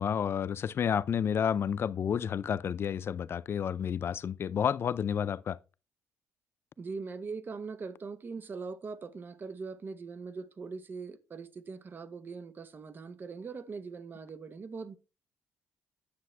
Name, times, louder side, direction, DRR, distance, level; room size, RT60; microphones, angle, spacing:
voice 1, 0.0-5.6, left 8 dB, 45° left, 0.4 m, -30 dB
voice 2, 6.8-15.0, right 4 dB, 35° right, 0.9 m, -41 dB
9.7 x 6.5 x 3.3 m
cardioid pair, 95°, 6 cm